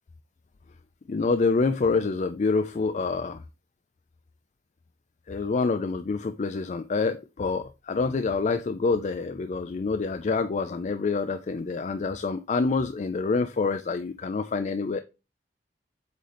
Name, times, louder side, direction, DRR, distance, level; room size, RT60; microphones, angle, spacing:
voice 1, 1.1-3.4 5.3-15.0, left 4 dB, 40° left, 0.4 m, -27 dB
8.2 x 3.8 x 3.4 m
head